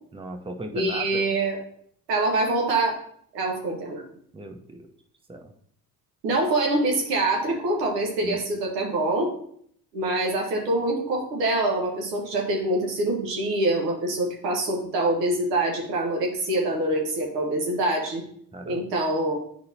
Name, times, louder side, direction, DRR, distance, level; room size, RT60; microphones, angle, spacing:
voice 1, 0.1-1.2 4.3-4.9 5.3-5.5 8.2-8.4 18.5-18.9, right 1 dB, 10° right, 5 dB, 0.8 m, -37 dB
voice 2, 0.7-1.6 2.1-3.0 3.3-4.0 6.2-9.3 9.9-18.2 18.6-19.4, right 2 dB, 80° right, 0 dB, 1.4 m, -25 dB
10.0 x 4.0 x 2.7 m, 0.65 s
hypercardioid pair, 50°, 48 cm